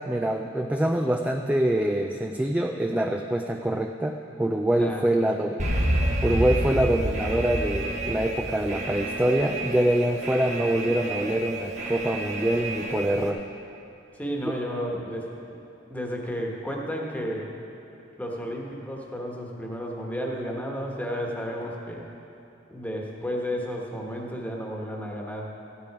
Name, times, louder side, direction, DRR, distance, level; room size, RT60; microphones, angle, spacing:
voice 1, 0.1-5.6 6.2-13.4 14.5-14.6, right 1 dB, 5° right, 3 dB, 0.3 m, -25 dB
voice 2, 4.8-5.3 14.1-15.5 15.9-17.5 18.2-22.0 22.7-25.5, equal, 10° left, -1 dB, 1.3 m, -32 dB
Alarm, 5.6-13.3, right 1 dB, 35° right, 1.2 m, -29 dB
15.0 x 9.6 x 4.8 m, 2.8 s
head